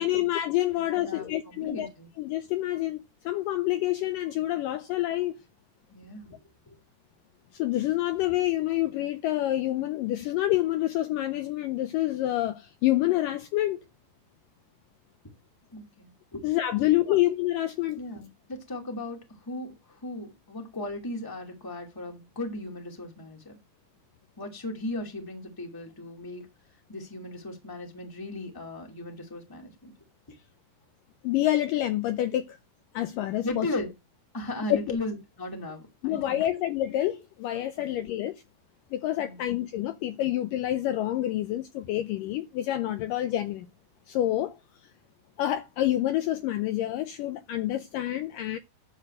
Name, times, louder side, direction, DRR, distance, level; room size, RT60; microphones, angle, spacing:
voice 1, 0.0-1.9 2.2-5.4 7.5-13.8 16.4-18.0 31.2-32.6 32.9-33.7 34.7-35.0 36.0-38.4 38.9-43.7 44.1-44.6 45.4-48.6, left 14 dB, 80° left, 2.1 m, -27 dB
voice 2, 1.0-2.1 5.9-6.4 6.7-6.8 15.7-16.4 16.8-17.2 18.0-19.2 19.5-23.5 24.4-26.4 26.9-29.9 33.4-33.9 34.3-36.5 37.8-38.1 39.2-39.5, left 2 dB, 10° left, 1.7 m, -37 dB
12.0 x 4.2 x 7.8 m
omnidirectional pair, 4.4 m